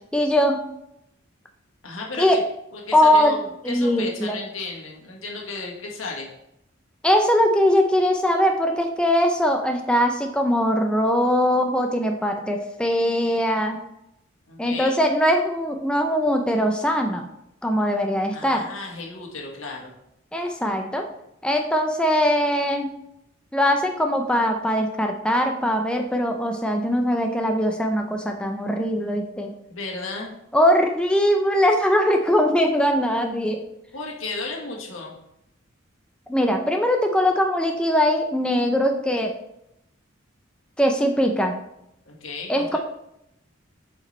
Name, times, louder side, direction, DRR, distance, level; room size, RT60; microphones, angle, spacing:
voice 1, 0.1-0.6 2.2-2.4 2.9-3.4 3.6-4.4 7.0-13.8 14.6-17.3 17.6-18.7 20.3-21.1 21.4-22.9 23.5-29.5 30.5-33.6 36.3-39.3 40.8-41.5 42.5-42.8, equal, 5° left, 3 dB, 0.5 m, -21 dB
voice 2, 1.8-2.3 2.7-6.3 14.5-15.0 18.3-19.9 29.7-30.3 33.9-35.2 42.0-42.8, left 3 dB, 80° left, -1 dB, 1.6 m, -34 dB
8.3 x 5.1 x 3.2 m, 0.82 s
head